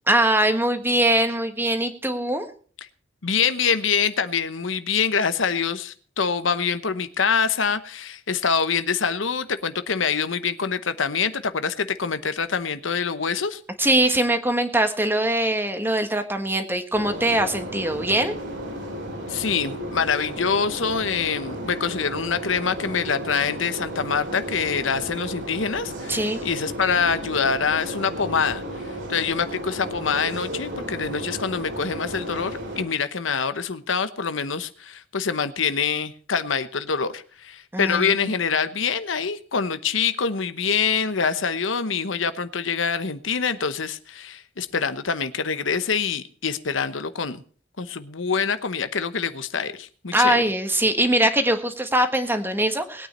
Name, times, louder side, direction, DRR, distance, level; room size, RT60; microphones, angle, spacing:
voice 1, 0.1-2.5 13.8-18.3 26.1-26.4 37.7-38.3 50.1-53.1, right 1 dB, 10° right, 1.5 m, -22 dB
voice 2, 3.2-13.6 19.3-28.6 29.1-47.4 47.8-50.4, left 6 dB, 85° left, 1.0 m, -25 dB
sound 1, 16.9-32.8, equal, 70° right, 3.3 m, -34 dB
20.5 x 9.2 x 4.3 m
head